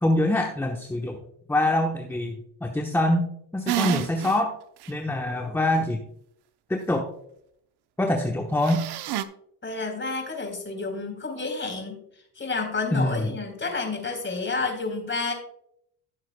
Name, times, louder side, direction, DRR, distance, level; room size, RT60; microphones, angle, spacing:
voice 1, 0.0-1.2 1.5-2.3 2.6-3.2 3.5-4.5 4.9-6.0 6.7-7.1 8.0-8.8 12.9-13.3, left 1 dB, 5° left, 3 dB, 1.0 m, -24 dB
sound 1, 3.7-4.4 4.8-4.9 8.6-9.2, right 12 dB, 55° right, 0.8 m, -28 dB
voice 2, 9.6-12.0 12.4-15.3, left 3 dB, 25° left, 3 dB, 3.9 m, -30 dB
16.0 x 7.4 x 2.2 m, 0.72 s
supercardioid pair, 90°, 46 cm